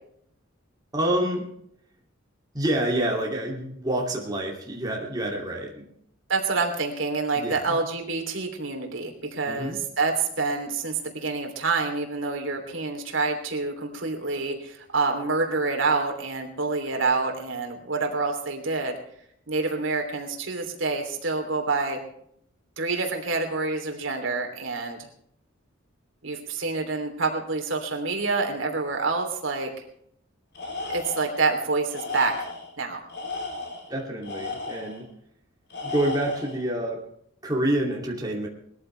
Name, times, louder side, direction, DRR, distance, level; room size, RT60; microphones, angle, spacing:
voice 1, 0.9-1.5 2.5-5.9 7.3-7.8 9.5-9.8 33.9-35.1 35.8-37.1 37.4-38.5, right 1 dB, 20° right, -1 dB, 2.6 m, -27 dB
voice 2, 6.3-18.9 19.5-22.0 22.8-25.1 26.2-29.7 30.9-32.3 32.8-33.0, right 3 dB, 65° right, 3 dB, 3.1 m, -27 dB
Tools, 30.5-31.4 31.9-32.7 33.1-35.0 35.7-36.6, left 3 dB, 55° left, 4.4 m, -35 dB
21.0 x 14.0 x 3.3 m, 0.70 s
head